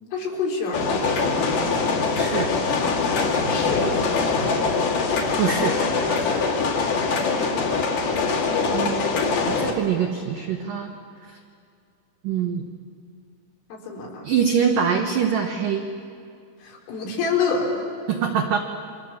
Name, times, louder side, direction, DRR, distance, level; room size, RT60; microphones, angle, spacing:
voice 1, 0.1-1.1 3.5-3.9 6.3-7.1 13.7-14.3 16.6-17.7, left 4 dB, 70° left, -2 dB, 6.6 m, -28 dB
sound 1, 0.7-9.7, left 4 dB, 55° left, 3.7 m, -23 dB
voice 2, 2.2-2.5 5.4-5.8 6.1-6.4 7.7-7.8 8.7-9.0 9.5-10.9 11.2-11.4 12.2-12.7 14.2-15.9 18.1-18.6, right 7 dB, 75° right, 2 dB, 2.0 m, -24 dB
29.5 x 25.5 x 7.4 m, 2.4 s
omnidirectional pair, 6.0 m